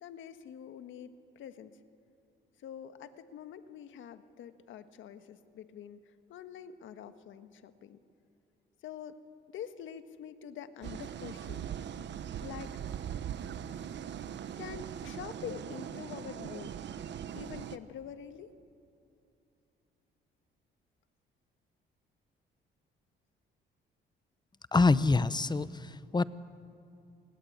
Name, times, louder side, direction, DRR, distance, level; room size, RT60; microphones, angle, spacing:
voice 1, 0.0-1.8 2.6-8.0 8.8-9.2 9.5-11.7 12.4-12.8 14.6-16.7 17.3-18.5, left 9 dB, 80° left, 10 dB, 1.5 m, -46 dB
sound 1, 10.8-17.8, right 9 dB, 65° right, 1.2 m, -40 dB
voice 2, 24.7-26.2, left 3 dB, 20° left, 16 dB, 0.9 m, -26 dB
28.5 x 21.0 x 8.7 m, 2.7 s
cardioid pair, 90°, 20 cm